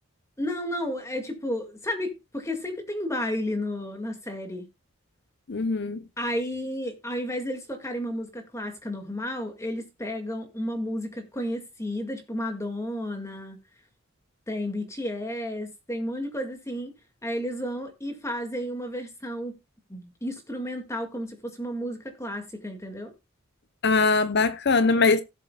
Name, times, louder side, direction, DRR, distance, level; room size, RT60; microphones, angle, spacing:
voice 1, 0.4-4.7 6.2-13.6 14.5-16.9 17.2-19.6 19.9-23.1, equal, 15° left, 2.0 m, -32 dB
voice 2, 5.5-6.0 23.8-25.2, left 4 dB, 50° left, 0.7 m, -21 dB
17.0 x 7.5 x 2.3 m
head